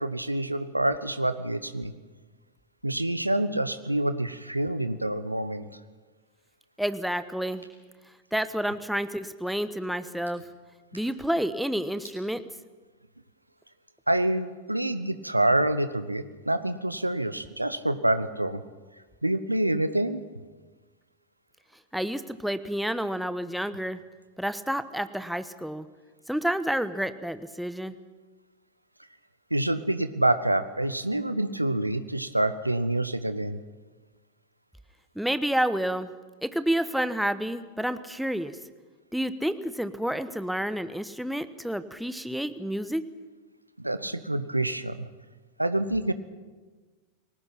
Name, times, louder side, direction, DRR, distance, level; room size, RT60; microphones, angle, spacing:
voice 1, 0.0-1.9 2.8-5.7 14.1-18.6 19.2-20.2 29.5-33.6 43.8-45.1 45.6-46.1, right 1 dB, 85° right, 12 dB, 1.1 m, -27 dB
voice 2, 6.8-7.6 8.3-10.4 10.9-12.4 21.9-24.0 24.4-25.9 26.3-27.9 35.1-36.1 36.4-38.5 39.1-43.1, equal, ahead, 12 dB, 1.1 m, -29 dB
sound 1, 7.0-12.2, right 1 dB, 85° left, 5.9 m, -57 dB
29.0 x 19.5 x 5.9 m, 1.3 s
figure-of-eight pair, 90°, 0 cm